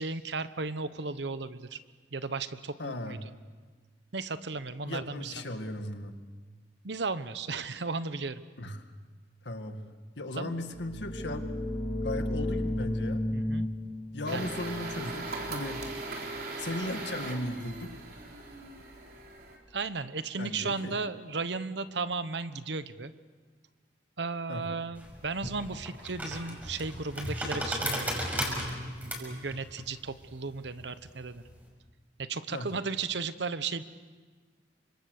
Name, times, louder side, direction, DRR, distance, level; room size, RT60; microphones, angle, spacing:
voice 1, 0.0-1.8 2.1-3.2 4.1-5.3 6.8-8.4 10.4-10.6 13.3-13.6 14.3-14.5 19.7-23.1 24.2-28.1 28.4-31.4 32.2-33.8, right 4 dB, 70° right, 13 dB, 1.0 m, -35 dB
voice 2, 2.8-3.3 4.9-6.2 8.6-8.8 9.4-9.8 10.2-11.5 12.0-13.2 14.1-15.8 16.6-18.0 20.4-20.9 24.5-24.7 32.5-32.7, left 1 dB, 75° left, 6 dB, 2.0 m, -37 dB
sound 1, 10.7-16.3, left 1 dB, 15° left, 2.1 m, -34 dB
sound 2, 14.3-19.6, right 3 dB, 55° right, 3.8 m, -39 dB
sound 3, 24.9-31.6, equal, 10° right, 5.9 m, -36 dB
29.5 x 25.5 x 6.6 m, 1.4 s
head